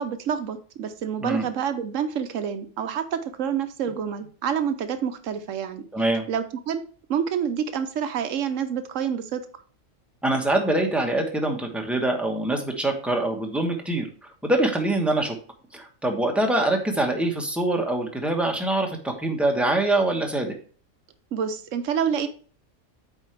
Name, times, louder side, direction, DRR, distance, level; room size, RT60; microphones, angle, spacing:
voice 1, 0.0-5.8 6.3-9.4 21.3-22.3, right 8 dB, 70° right, 10 dB, 1.1 m, -28 dB
voice 2, 5.9-6.2 10.2-14.1 14.4-15.4 15.7-20.6, right 2 dB, ahead, 2 dB, 1.0 m, -24 dB
8.2 x 4.7 x 3.3 m, 0.41 s
omnidirectional pair, 1.4 m